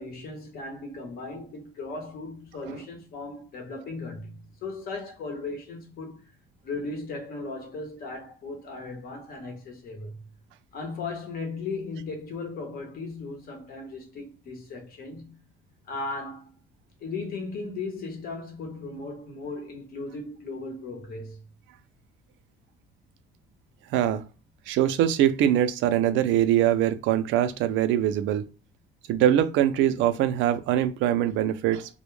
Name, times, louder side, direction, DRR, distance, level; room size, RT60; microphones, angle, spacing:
voice 1, 0.0-6.3 6.6-10.2 10.7-15.4 15.9-16.5 17.0-21.4, left 3 dB, 50° left, 0.8 m, -37 dB
voice 2, 23.9-24.2 24.7-28.4 29.1-32.0, right 11 dB, 85° right, 0.4 m, -23 dB
2.1 x 2.1 x 3.1 m
cardioid pair, 170°, 19 cm